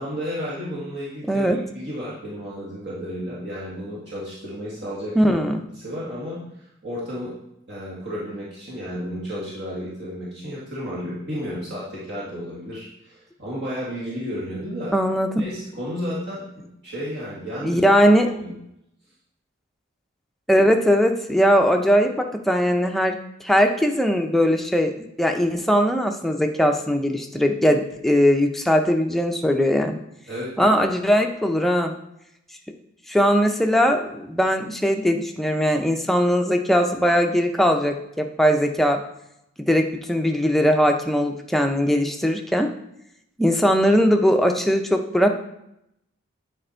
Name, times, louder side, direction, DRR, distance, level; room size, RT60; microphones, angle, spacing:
voice 1, 0.0-5.4 5.8-6.4 6.8-7.3 7.7-15.0 15.4-16.5 16.8-17.9 18.2-18.5 30.3-30.8, equal, 55° right, -7 dB, 1.9 m, -32 dB
voice 2, 5.2-5.6 14.9-15.4 17.6-18.3 20.5-23.1 23.4-24.9 25.2-30.0 30.6-31.9 33.1-39.0 39.6-42.7 43.4-45.3, equal, ahead, 4 dB, 0.5 m, -20 dB
9.2 x 4.3 x 4.4 m, 0.80 s
head